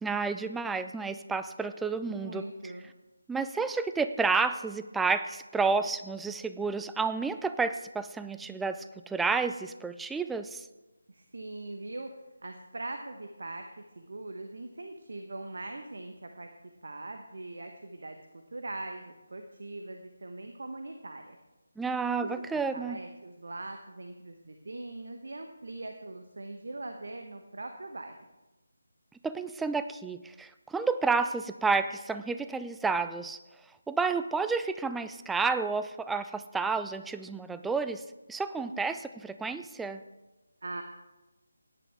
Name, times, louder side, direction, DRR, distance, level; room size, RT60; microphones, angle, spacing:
voice 1, 0.0-2.4 3.3-10.6 21.8-23.0 29.2-33.4 33.9-38.0 38.3-39.0 39.2-40.0, right 4 dB, 5° right, 10 dB, 0.3 m, -30 dB
voice 2, 2.1-2.9 11.1-12.1 12.4-16.5 16.8-21.4 22.2-28.2 38.7-38.8 40.6-40.8, right 2 dB, 60° right, 5 dB, 1.1 m, -41 dB
16.5 x 10.0 x 3.5 m, 1.1 s
figure-of-eight pair, 155°, 0 cm